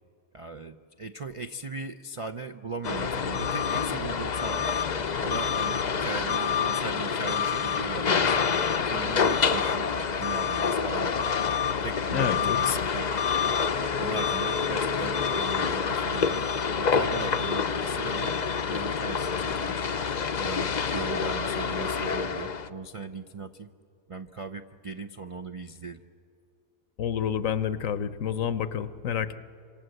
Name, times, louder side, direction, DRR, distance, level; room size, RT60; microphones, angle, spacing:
voice 1, 0.3-4.7 5.2-8.5 8.9-9.9 10.2-11.3 11.8-13.1 13.4-13.5 14.0-16.4 16.8-18.4 18.6-19.9 20.4-23.7 24.1-26.0, right 3 dB, 55° right, 7 dB, 0.3 m, -38 dB
sound 1, 2.8-22.7, left 6 dB, 45° left, 0.6 m, -27 dB
voice 2, 12.1-12.8 27.0-29.3, left 8 dB, 65° left, 13 dB, 1.1 m, -29 dB
26.5 x 26.0 x 7.9 m, 2.5 s
omnidirectional pair, 1.5 m